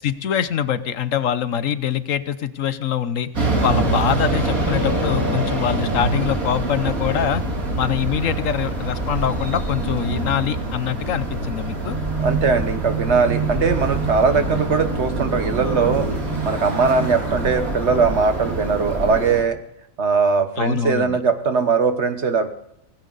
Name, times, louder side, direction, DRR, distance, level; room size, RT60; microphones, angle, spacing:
voice 1, 0.0-7.4 7.8-12.0 14.3-14.4 20.6-21.2, left 9 dB, 70° left, 13 dB, 1.2 m, -24 dB
sound 1, 3.3-19.4, right 2 dB, 90° right, 3.2 m, -25 dB
sound 2, 11.3-19.0, right 6 dB, 25° right, 1.6 m, -31 dB
voice 2, 12.2-16.1 16.4-19.6 20.0-22.5, right 5 dB, 55° right, 9 dB, 1.4 m, -20 dB
17.5 x 16.0 x 4.0 m, 0.81 s
omnidirectional pair, 1.4 m